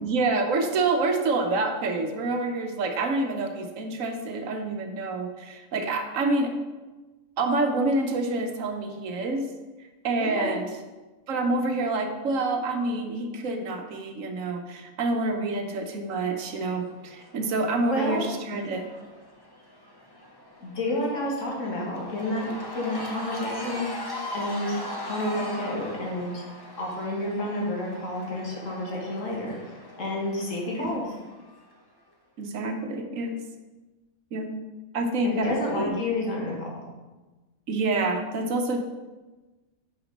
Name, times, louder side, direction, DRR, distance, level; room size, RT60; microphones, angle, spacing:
voice 1, 0.0-6.5 7.4-9.5 9.8-10.7 11.3-18.9 30.8-31.0 32.4-33.4 34.3-34.5 34.9-36.0 37.7-38.8, right 2 dB, 70° right, 5 dB, 1.2 m, -27 dB
voice 2, 10.2-10.6 17.9-18.2 20.6-26.4 26.8-31.1 35.2-36.7, left 1 dB, 65° left, -3 dB, 2.0 m, -30 dB
Cheering / Crowd, 16.4-31.7, left 1 dB, 20° left, 0.9 m, -40 dB
5.8 x 5.1 x 5.2 m, 1.2 s
omnidirectional pair, 1.5 m